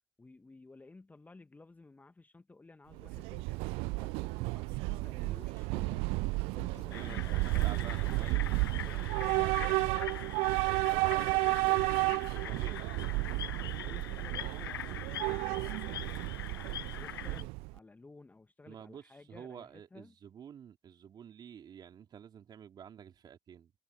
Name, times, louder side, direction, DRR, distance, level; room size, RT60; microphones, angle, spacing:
voice 1, 0.2-6.0 6.4-8.4 8.8-11.9 13.7-16.1 16.9-20.2, left 3 dB, 15° left, 1.8 m, -55 dB
Train / Subway metro underground, 2.9-17.8, right 26 dB, 50° right, 0.4 m, -32 dB
sound 1, 4.9-10.2, left 16 dB, 50° left, 2.3 m, -56 dB
sound 2, 6.9-17.4, left 11 dB, 80° left, 0.5 m, -44 dB
voice 2, 6.9-8.5 12.0-13.0 18.7-23.7, right 8 dB, 35° right, 3.6 m, -50 dB
figure-of-eight pair, 70°, 12 cm